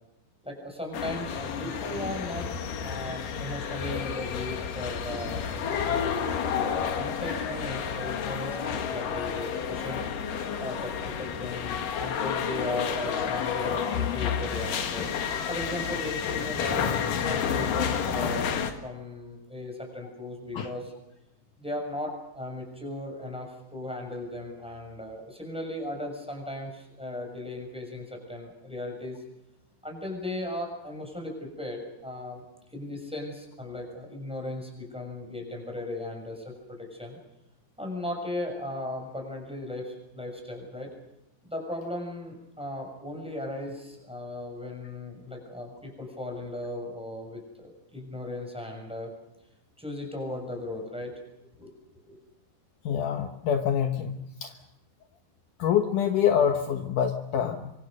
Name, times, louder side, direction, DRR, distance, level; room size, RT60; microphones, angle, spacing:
voice 1, 0.4-2.5 2.8-6.6 6.9-10.0 10.6-15.1 15.3-20.9 21.6-29.2 29.8-32.4 32.7-37.2 37.8-40.9 41.5-49.1 49.8-51.2 51.5-51.7 52.1-52.2, left 1 dB, ahead, 2 dB, 6.3 m, -37 dB
sound 1, 0.9-18.7, left 7 dB, 55° left, 2.7 m, -30 dB
voice 2, 52.9-54.5 55.6-57.7, left 8 dB, 80° left, 5 dB, 1.8 m, -26 dB
25.5 x 25.0 x 6.7 m, 0.87 s
omnidirectional pair, 5.5 m